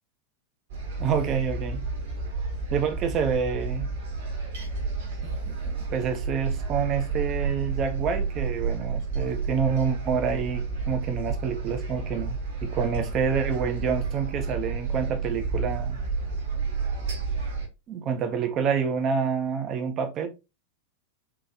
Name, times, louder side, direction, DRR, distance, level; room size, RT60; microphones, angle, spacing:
sound 1, 0.7-17.7, right 4 dB, 60° right, 1.5 m, -31 dB
voice 1, 1.0-1.9 2.7-3.9 5.2-5.3 5.6-16.0 17.9-20.3, right 6 dB, 35° right, 0.6 m, -28 dB
3.8 x 3.1 x 2.8 m
figure-of-eight pair, 90°, 0 cm